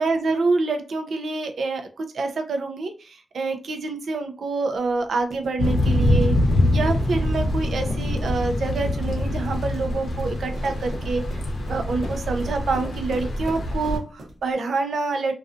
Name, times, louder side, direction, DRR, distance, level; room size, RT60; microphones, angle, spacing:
voice 1, 0.0-6.4 6.7-11.4 11.7-15.3, right 3 dB, 80° right, 5 dB, 0.4 m, -26 dB
sound 1, 4.8-14.5, right 1 dB, 65° right, 0.9 m, -42 dB
Thunder / Rain, 5.6-14.0, left 1 dB, 70° left, 0.6 m, -24 dB
2.3 x 2.3 x 2.5 m, 0.34 s
wide cardioid pair, 105°, 0 cm